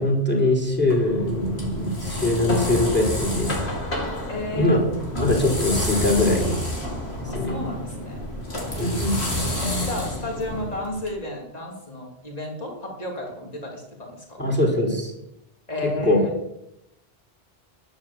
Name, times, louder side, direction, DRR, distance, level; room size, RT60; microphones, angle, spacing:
voice 1, 0.0-3.6 4.6-4.8 5.2-6.6 7.2-7.6 8.8-9.2 14.4-15.1 16.0-16.2, left 2 dB, 10° left, -1 dB, 3.7 m, -22 dB
sound 1, 0.7-11.1, left 1 dB, 90° left, 3.5 m, -29 dB
voice 2, 4.3-4.8 7.3-8.2 9.6-14.4 15.7-16.3, left 1 dB, 40° left, -1 dB, 3.3 m, -32 dB
11.5 x 9.7 x 7.4 m, 0.86 s
omnidirectional pair, 1.1 m